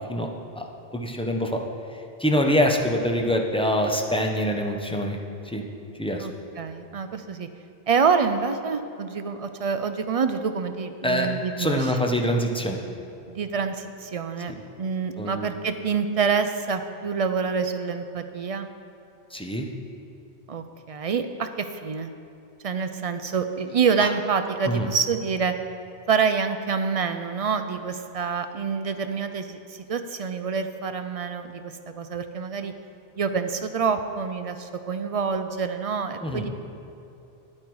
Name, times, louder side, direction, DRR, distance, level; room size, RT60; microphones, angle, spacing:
voice 1, 0.9-1.6 1.9-5.2 5.4-5.7 6.0-6.3 11.0-11.3 11.6-12.8 14.5-14.6 15.2-15.5 19.3-19.7 24.0-24.1 24.7-24.9 36.2-36.5, equal, 5° left, 2 dB, 0.6 m, -25 dB
voice 2, 6.2-7.5 7.9-11.8 13.3-18.7 20.5-22.1 22.6-25.5 26.1-32.7 33.2-36.5, right 5 dB, 50° right, 8 dB, 0.4 m, -27 dB
9.7 x 8.7 x 4.7 m, 2.8 s
omnidirectional pair, 1.0 m